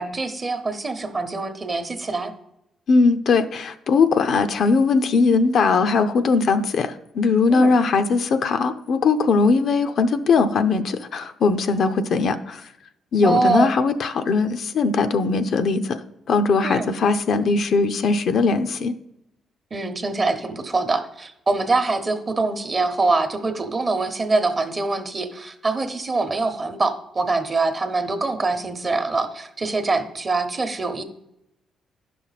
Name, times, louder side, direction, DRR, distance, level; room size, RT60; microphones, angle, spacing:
voice 1, 0.0-2.3 7.5-7.7 13.2-13.8 16.6-16.9 19.7-31.0, right 3 dB, 30° right, 8 dB, 0.9 m, -24 dB
voice 2, 2.9-12.6 13.1-16.0 16.3-18.9, left 4 dB, 60° left, 9 dB, 0.5 m, -20 dB
10.5 x 5.9 x 4.1 m, 0.84 s
cardioid pair, 90°, 0 cm